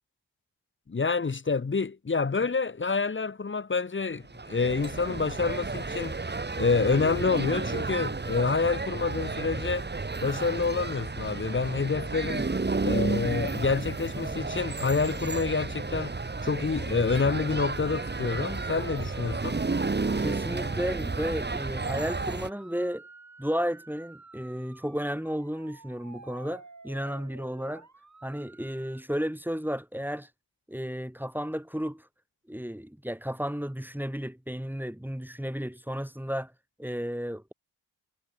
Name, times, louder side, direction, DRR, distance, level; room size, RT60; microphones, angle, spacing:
voice 1, 0.9-9.9 10.2-12.5 12.8-19.6, left 4 dB, 25° left, 0.9 m, -28 dB
sound 1, 4.3-22.5, right 3 dB, 20° right, 1.3 m, -32 dB
sound 2, 16.5-29.0, right 3 dB, 35° right, 5.7 m, -50 dB
voice 2, 20.2-23.0 23.4-27.9 28.2-30.3 30.7-32.1 32.5-36.5 36.8-37.5, equal, 5° right, 2.0 m, -33 dB
supercardioid pair, 40°, 46 cm